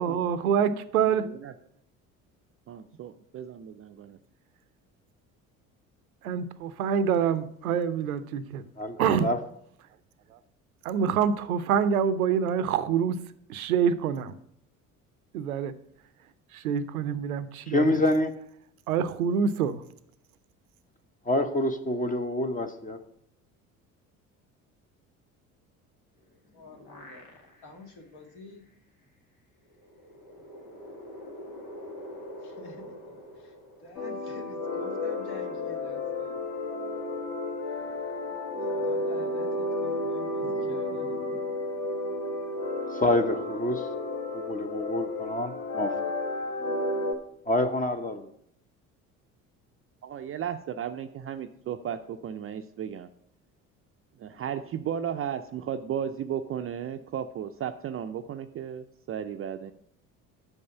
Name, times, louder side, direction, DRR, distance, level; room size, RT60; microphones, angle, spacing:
voice 1, 0.0-1.3 6.2-8.6 9.0-9.3 10.3-10.4 10.8-13.2 13.5-14.4 15.3-15.7 16.5-18.0 18.9-19.8, right 7 dB, 85° right, 14 dB, 0.6 m, -26 dB
voice 2, 1.1-1.5 2.7-4.2 50.0-53.1 54.2-59.7, right 9 dB, 35° right, 8 dB, 0.4 m, -35 dB
voice 3, 8.8-9.4 17.7-18.3 21.3-23.0 42.9-43.9 44.3-45.9 47.5-48.3, left 1 dB, 20° left, 7 dB, 0.8 m, -27 dB
sound 1, 26.2-27.8 28.3-28.4 29.7-34.4, equal, 85° left, 1.6 m, -45 dB
voice 4, 26.5-27.3 27.6-28.6 30.4-30.5 32.4-33.0 33.3-36.4 38.6-41.4, left 2 dB, 60° left, 2 dB, 1.9 m, -47 dB
sound 2, 34.0-47.1, left 2 dB, 45° left, 1.7 m, -32 dB
6.4 x 5.4 x 6.8 m, 0.69 s
hypercardioid pair, 60°, 42 cm